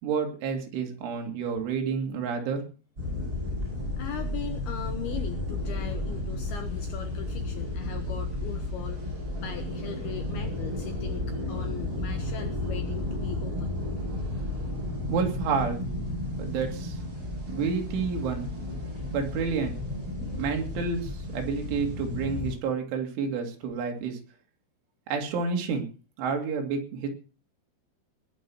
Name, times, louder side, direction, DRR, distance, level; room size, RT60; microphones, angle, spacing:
voice 1, 0.0-2.6 15.1-15.8 16.4-17.0 17.5-18.5 19.1-19.8 20.3-24.2 25.1-25.9 26.2-27.1, right 5 dB, 70° right, 3 dB, 4.7 m, -29 dB
sound 1, 3.0-22.5, left 1 dB, 25° right, 7.8 m, -33 dB
voice 2, 4.0-13.8, left 8 dB, 75° left, 7 dB, 2.3 m, -39 dB
20.5 x 7.0 x 6.2 m, 0.36 s
omnidirectional pair, 5.8 m